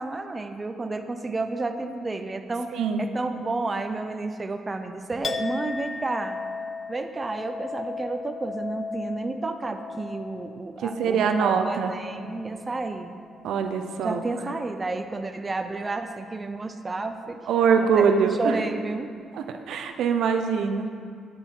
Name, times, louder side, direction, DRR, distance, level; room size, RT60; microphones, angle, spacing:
voice 1, 0.0-6.4 6.9-13.1 14.0-17.5 17.9-18.1 18.4-19.1, right 3 dB, 25° right, 6 dB, 0.6 m, -31 dB
Chink clink, 5.2-12.9 13.3-13.9, left 4 dB, 45° left, 0.5 m, -37 dB
voice 2, 10.8-11.9 13.4-14.2 17.5-18.6 19.3-20.9, right 6 dB, 80° right, 6 dB, 0.7 m, -23 dB
9.2 x 7.4 x 4.6 m, 2.2 s
cardioid pair, 90°, 0 cm